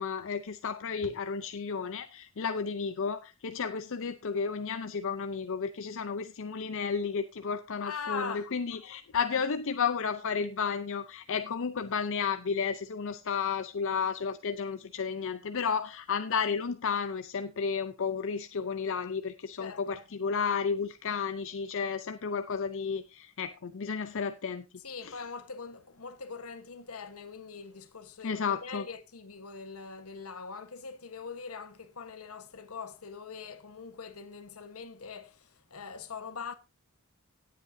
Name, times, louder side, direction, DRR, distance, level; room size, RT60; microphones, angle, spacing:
voice 1, 0.0-24.6 25.0-25.2 28.2-28.9, left 6 dB, 65° left, 0.6 m, -32 dB
voice 2, 7.8-8.5 19.6-20.0 24.8-36.5, left 5 dB, 80° left, 1.3 m, -42 dB
17.5 x 8.3 x 2.7 m
head